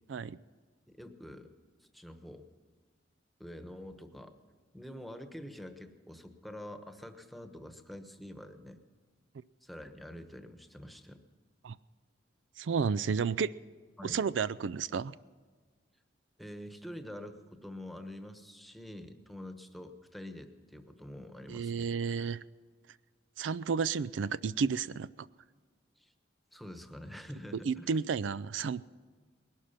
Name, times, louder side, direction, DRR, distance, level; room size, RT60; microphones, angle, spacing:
voice 1, 1.0-1.5 1.9-2.5 3.4-4.3 4.7-8.8 9.6-11.2 14.0-14.2 16.4-21.9 26.0-26.1 26.5-28.0, left 1 dB, ahead, 7 dB, 1.1 m, -46 dB
voice 2, 12.6-13.5 14.0-15.2 21.5-22.4 23.4-25.3 27.5-28.8, right 6 dB, 85° right, 17 dB, 0.4 m, -32 dB
20.5 x 12.0 x 5.7 m, 1.5 s
head